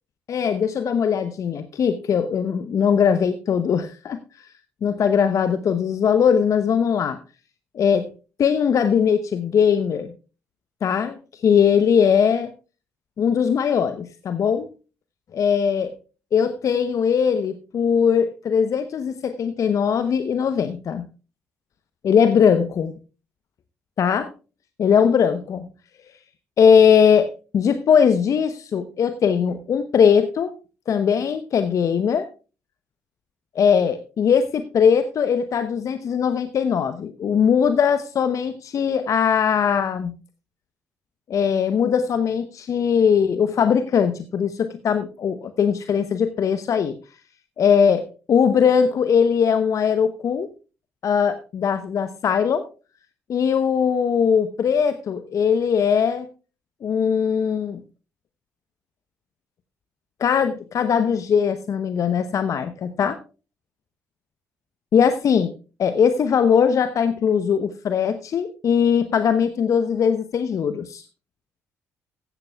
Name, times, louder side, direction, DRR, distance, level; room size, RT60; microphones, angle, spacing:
voice 1, 0.3-4.5 4.8-7.2 7.7-8.1 8.4-10.1 10.8-12.5 13.2-14.7 15.3-15.9 16.3-21.0 22.0-22.9 24.0-24.3 24.8-25.7 26.6-27.3 27.5-30.5 30.9-32.3 33.5-40.1 41.3-47.0 47.6-50.5 51.0-52.6 53.3-56.3 56.8-57.8 60.2-63.2 64.9-65.5 65.8-71.0, left 7 dB, 55° left, 11 dB, 0.8 m, -20 dB
15.5 x 13.0 x 2.3 m, 0.33 s
hypercardioid pair, 45°, 7 cm